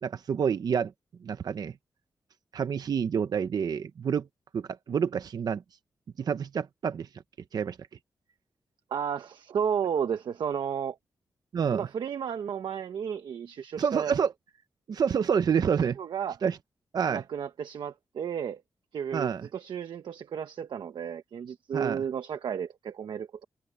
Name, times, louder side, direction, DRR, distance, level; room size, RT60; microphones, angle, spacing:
voice 1, 0.0-0.9 1.2-1.7 2.5-4.3 4.5-5.6 6.2-7.1 7.5-7.8 11.5-11.9 13.8-14.3 14.9-16.0 16.4-16.6 16.9-17.2 19.1-19.5 21.7-22.0, right 7 dB, 60° right, 0.7 m, -28 dB
voice 2, 8.9-11.0 11.7-14.1 16.0-16.4 17.1-18.6 18.9-23.4, right 8 dB, 90° right, 1.2 m, -33 dB
wide cardioid pair, 160°, 8 cm